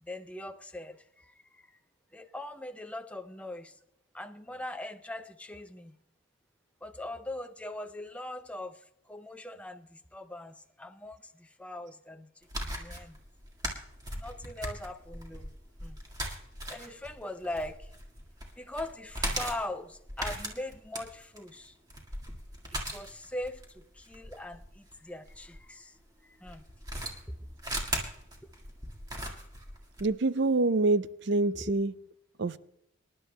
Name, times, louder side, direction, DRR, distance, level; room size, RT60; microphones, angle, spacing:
voice 1, 0.0-1.8 2.1-3.7 4.1-5.9 6.8-12.3 12.6-13.2 14.1-15.6 15.8-16.0 16.7-17.9 18.6-21.8 22.7-25.9 26.2-26.6, left 1 dB, 5° left, 7 dB, 0.5 m, -41 dB
sound 1, 12.4-25.6 26.5-30.1, right 1 dB, 20° right, 1.8 m, -38 dB
voice 2, 30.0-31.9 32.4-32.6, right 2 dB, 60° right, 14 dB, 0.5 m, -26 dB
26.5 x 11.0 x 2.2 m, 0.76 s
head